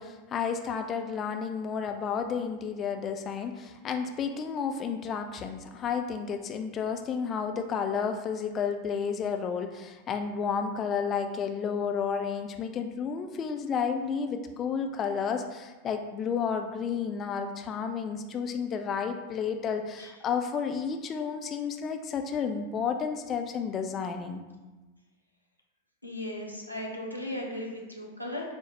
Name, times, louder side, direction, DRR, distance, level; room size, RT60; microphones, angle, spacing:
voice 1, 0.0-24.4, left 6 dB, 25° left, 6 dB, 0.3 m, -31 dB
voice 2, 26.0-28.5, left 1 dB, 90° right, -1 dB, 0.7 m, -36 dB
5.5 x 2.1 x 2.8 m, 1.2 s
figure-of-eight pair, 90°, 0 cm